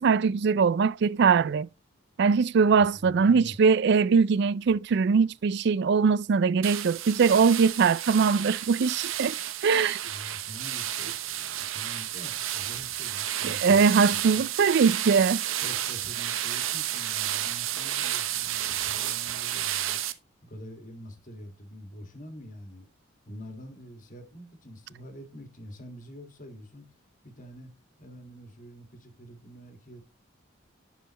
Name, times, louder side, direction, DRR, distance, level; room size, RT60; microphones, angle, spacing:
voice 1, 0.0-1.7 2.2-10.0 13.4-15.4, right 5 dB, 55° right, 0.4 m, -22 dB
voice 2, 2.8-3.5 10.0-13.8 14.3-14.4 15.6-20.0 20.4-22.9 23.3-27.0 27.2-27.7 28.0-30.0, equal, 40° left, 1.8 m, -46 dB
sound 1, 6.6-20.1, right 12 dB, 80° right, 0.8 m, -31 dB
11.0 x 5.6 x 3.0 m
head